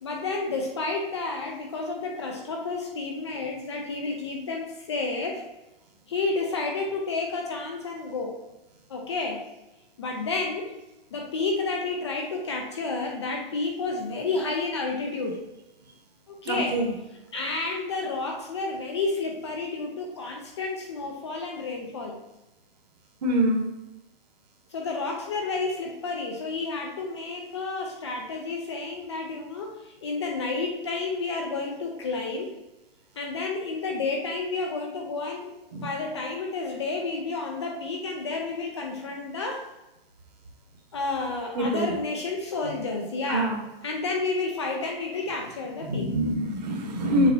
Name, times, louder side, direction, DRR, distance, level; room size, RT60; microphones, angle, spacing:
voice 1, 0.0-5.4 6.1-8.4 8.9-9.4 10.0-10.7 11.1-15.4 16.3-16.8 17.3-22.2 24.7-32.5 33.2-39.7 40.9-43.5 43.8-46.1, left 3 dB, 30° left, 1 dB, 0.5 m, -30 dB
voice 2, 16.4-16.9 23.2-23.6 35.7-35.9 41.5-41.9 43.3-43.7 45.8-47.3, right 1 dB, 45° right, 2 dB, 1.3 m, -25 dB
7.0 x 5.5 x 2.7 m, 1.0 s
hypercardioid pair, 170°, 30 cm